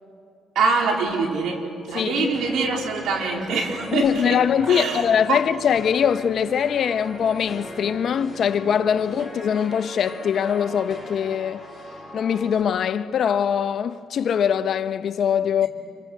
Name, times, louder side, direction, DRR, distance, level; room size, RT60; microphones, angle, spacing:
voice 1, 0.6-4.4 4.7-5.0 5.3-5.4 9.2-9.3, right 4 dB, 75° right, 3.9 m, -24 dB
voice 2, 1.9-2.3 3.9-11.6 12.1-15.7, left 8 dB, 60° left, 0.9 m, -22 dB
sound 1, 2.3-12.6, equal, 10° right, 7.6 m, -40 dB
27.0 x 26.0 x 8.1 m
cardioid pair, 90°, 0 cm